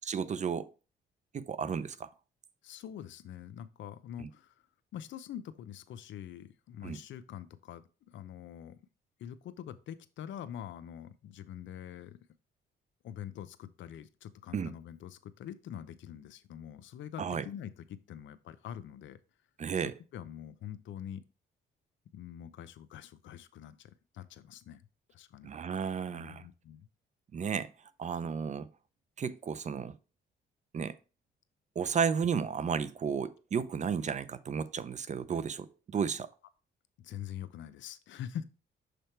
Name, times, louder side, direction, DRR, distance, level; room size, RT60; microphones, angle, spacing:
voice 1, 0.0-0.7 1.3-2.1 4.2-4.3 6.8-7.0 14.5-14.7 17.2-17.4 19.6-19.9 25.4-26.4 27.3-27.7 28.0-28.7 29.2-29.9 30.7-31.0 31.8-36.3, right 6 dB, 35° right, 0.5 m, -33 dB
voice 2, 2.6-4.5 4.9-8.8 9.2-12.2 13.0-19.2 19.8-21.2 22.1-24.8 25.1-25.5 26.1-26.9 37.0-38.4, left 10 dB, 70° left, 0.6 m, -45 dB
6.5 x 3.4 x 4.4 m
cardioid pair, 90°, 20 cm